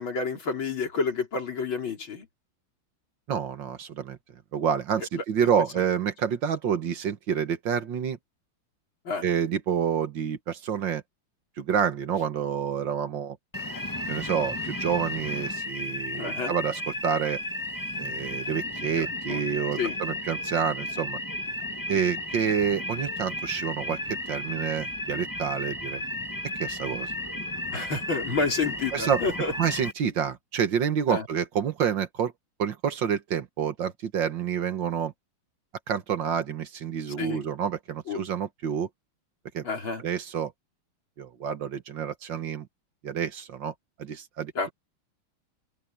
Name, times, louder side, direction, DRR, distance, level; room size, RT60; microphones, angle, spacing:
voice 1, 0.0-2.3 9.1-9.3 16.2-16.6 19.0-19.4 19.8-19.9 27.7-29.5 31.1-31.2 37.2-37.5 38.1-38.2 39.6-40.0 44.6-44.7, left 4 dB, 70° left, 4.6 m, -29 dB
voice 2, 3.3-4.2 4.5-8.2 9.2-11.0 11.6-13.4 14.1-17.4 18.0-21.2 21.9-26.0 26.6-27.1 28.9-29.2 29.6-32.3 32.6-35.1 35.9-38.9 39.5-39.7 40.0-40.5 41.2-42.7 43.0-43.7 44.0-44.7, right 8 dB, 65° right, 2.0 m, -28 dB
sound 1, 13.5-29.9, left 1 dB, 10° left, 1.4 m, -33 dB
open air
omnidirectional pair, 2.3 m